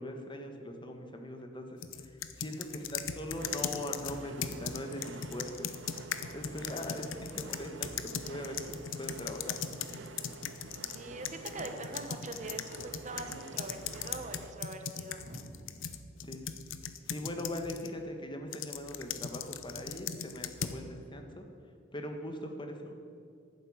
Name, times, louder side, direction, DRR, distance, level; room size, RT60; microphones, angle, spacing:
voice 1, 0.0-1.8 2.4-5.7 6.3-9.6 10.3-10.4 16.2-16.4 17.1-21.4 21.9-22.9, left 1 dB, 25° left, 4 dB, 1.3 m, -41 dB
sound 1, 1.8-11.0 11.2-17.9 18.5-20.8, left 8 dB, 85° left, 0.8 m, -39 dB
sound 2, 3.3-14.5, right 3 dB, 65° right, 0.8 m, -48 dB
voice 2, 10.9-15.8, right 2 dB, 40° right, 6 dB, 1.2 m, -43 dB
11.5 x 9.6 x 8.4 m, 2.3 s
head